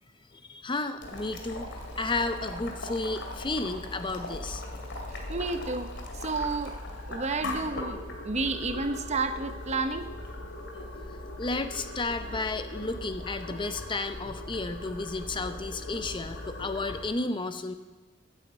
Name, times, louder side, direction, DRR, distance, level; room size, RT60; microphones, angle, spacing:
voice 1, 0.3-1.7 2.0-4.6 11.4-17.7, left 3 dB, 25° left, 9 dB, 0.6 m, -32 dB
Boiling, 1.0-17.1, left 2 dB, 60° left, 2.5 m, -39 dB
voice 2, 5.3-5.9 6.2-6.8 7.1-8.0 8.2-10.1, right 3 dB, 35° right, 9 dB, 0.9 m, -30 dB
14.5 x 9.2 x 8.1 m, 1.2 s
head